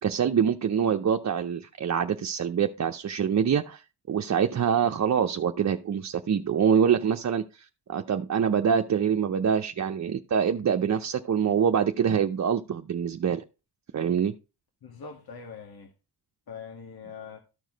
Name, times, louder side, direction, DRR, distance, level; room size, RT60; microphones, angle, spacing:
voice 1, 0.0-13.4 13.9-14.3, right 7 dB, 45° right, 0.6 m, -25 dB
voice 2, 14.8-15.9 16.5-17.4, left 5 dB, 65° left, 1.9 m, -42 dB
13.0 x 4.7 x 5.1 m
wide cardioid pair, 105°, 40 cm